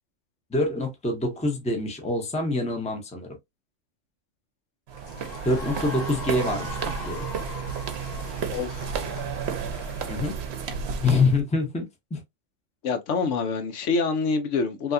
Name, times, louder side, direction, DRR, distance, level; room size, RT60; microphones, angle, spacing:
voice 1, 0.5-3.3 5.4-7.3 10.1-10.4 11.0-12.2, left 2 dB, 5° left, 0.6 m, -26 dB
sound 1, 4.9-11.2, left 3 dB, 40° left, 0.8 m, -41 dB
sound 2, 4.9-11.4, right 6 dB, 60° right, 0.8 m, -32 dB
voice 2, 8.5-8.9 12.8-14.9, left 4 dB, 70° left, 0.9 m, -26 dB
3.3 x 2.7 x 2.5 m
omnidirectional pair, 1.3 m